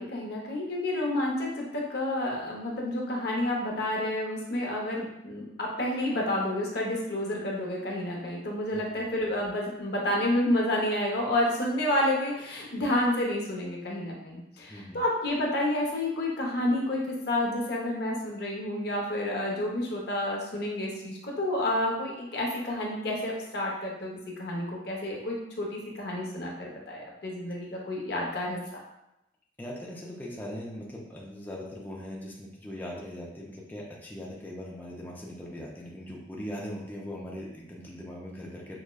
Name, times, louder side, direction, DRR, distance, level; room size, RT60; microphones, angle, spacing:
voice 1, 0.0-28.6, left 1 dB, 65° left, -1 dB, 0.7 m, -30 dB
voice 2, 14.7-15.0 29.6-38.8, equal, 10° left, -4 dB, 0.4 m, -40 dB
4.8 x 2.1 x 2.2 m, 0.88 s
head